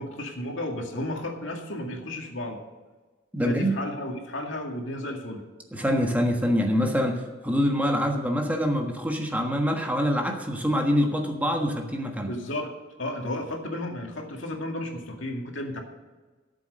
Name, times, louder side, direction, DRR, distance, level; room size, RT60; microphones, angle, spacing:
voice 1, 0.0-2.6 3.4-5.4 12.3-12.7 13.0-15.8, left 1 dB, 75° left, 2 dB, 2.2 m, -33 dB
voice 2, 3.3-3.8 5.7-12.3, equal, 10° right, 2 dB, 1.4 m, -25 dB
13.5 x 7.7 x 6.5 m, 1.3 s
head